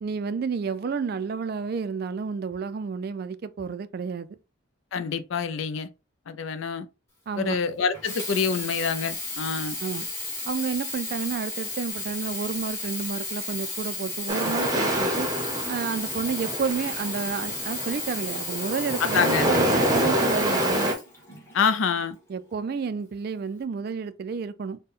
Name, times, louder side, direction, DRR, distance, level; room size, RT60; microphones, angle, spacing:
voice 1, 0.0-4.3 7.3-7.6 9.8-10.1 10.5-15.3 15.7-21.0 22.3-24.8, right 5 dB, 50° right, 0.3 m, -30 dB
voice 2, 4.9-5.9 6.3-6.9 7.4-9.8 19.0-19.5 21.5-22.2, left 5 dB, 75° left, 0.4 m, -26 dB
Sink (filling or washing), 7.9-21.7 22.4-22.5, left 2 dB, 15° left, 1.2 m, -33 dB
sound 1, 14.3-20.9, right 1 dB, 20° right, 0.7 m, -27 dB
4.1 x 2.2 x 3.6 m
head